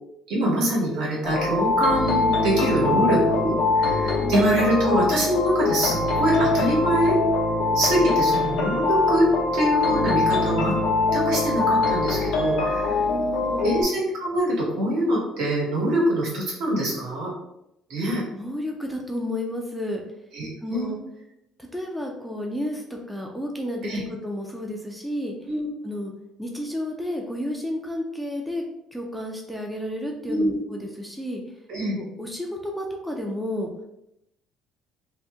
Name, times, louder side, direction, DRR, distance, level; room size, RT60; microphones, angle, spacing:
voice 1, 0.3-7.2 7.7-9.3 9.5-10.7 11.1-13.0 13.6-17.3 17.9-18.2 20.3-20.9 23.9-24.0 25.5-25.7 30.3-30.6 31.7-32.0, right 1 dB, 75° right, -4 dB, 1.2 m, -24 dB
sound 1, 1.2-13.8, left 3 dB, 80° left, 0.5 m, -23 dB
voice 2, 12.9-13.7 18.0-20.0 20.6-21.0 21.7-25.3 25.8-26.1 26.4-28.6 28.9-31.4 31.9-33.7, left 1 dB, ahead, 0 dB, 0.3 m, -31 dB
2.6 x 2.1 x 3.4 m, 0.82 s
cardioid pair, 150°, 0 cm